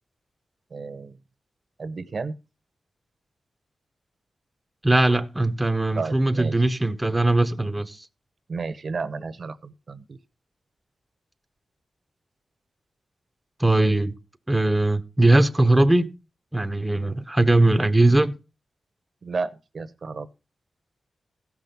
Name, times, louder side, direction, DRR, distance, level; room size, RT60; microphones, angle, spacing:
voice 1, 0.7-1.2 1.8-2.3 5.9-6.6 8.5-10.2 19.2-20.3, right 4 dB, 55° right, 0.9 m, -32 dB
voice 2, 4.8-8.0 13.6-14.1 14.5-16.1 16.5-18.3, right 2 dB, 10° right, 0.9 m, -20 dB
16.0 x 6.0 x 5.3 m
wide cardioid pair, 105°, 0 cm